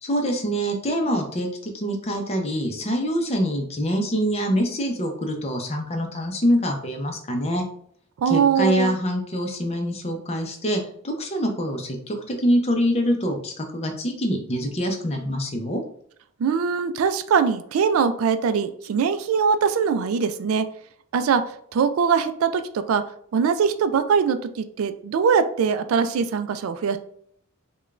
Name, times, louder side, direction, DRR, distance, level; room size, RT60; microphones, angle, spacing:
voice 1, 0.0-7.6 8.3-15.8, equal, 30° left, 3 dB, 0.6 m, -25 dB
voice 2, 8.2-9.0 16.4-20.7 21.1-21.4 21.7-23.0 23.3-27.0, right 6 dB, 75° right, 10 dB, 0.3 m, -22 dB
4.9 x 2.3 x 2.4 m, 0.63 s
head